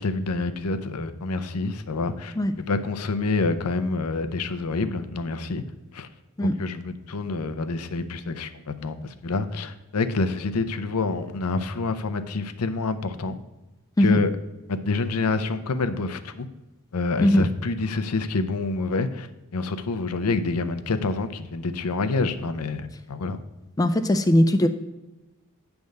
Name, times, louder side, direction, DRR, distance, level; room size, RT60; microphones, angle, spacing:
voice 1, 0.0-2.3 2.7-5.6 5.9-6.1 6.4-13.4 14.0-14.3 14.7-16.5 16.9-23.4, left 3 dB, 90° left, 10 dB, 0.6 m, -27 dB
voice 2, 23.8-24.7, left 1 dB, 15° left, 9 dB, 0.3 m, -19 dB
9.2 x 3.5 x 6.4 m, 1.0 s
head